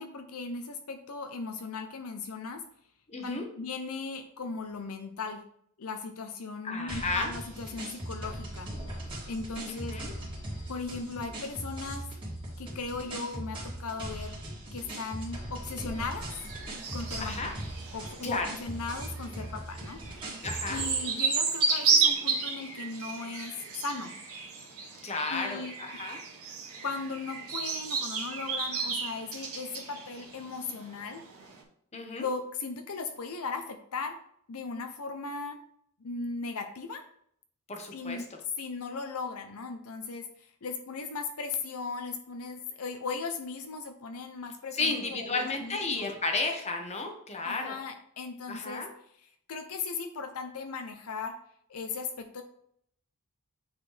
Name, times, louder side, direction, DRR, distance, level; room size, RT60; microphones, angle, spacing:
voice 1, 0.0-2.6 3.2-5.4 5.8-8.7 9.3-10.0 10.7-12.1 12.6-14.4 14.7-16.3 16.9-17.5 17.9-20.0 20.7-24.1 25.3-25.8 26.8-31.2 32.1-34.1 34.5-35.6 36.0-37.0 37.9-38.3 38.6-46.1 47.4-48.9 49.2-51.3 51.7-52.4, left 4 dB, 75° left, 6 dB, 0.7 m, -37 dB
voice 2, 3.1-3.4 6.6-7.3 9.7-10.1 17.2-17.5 18.2-18.5 20.4-20.8 25.0-26.2 31.9-32.3 37.7-38.2 44.8-47.7 48.5-48.9, left 3 dB, 30° left, 4 dB, 1.1 m, -33 dB
sound 1, 6.9-21.1, right 1 dB, 25° right, 2.3 m, -40 dB
sound 2, 15.9-31.6, right 5 dB, 70° right, 1.8 m, -33 dB
8.9 x 4.1 x 3.3 m, 0.66 s
head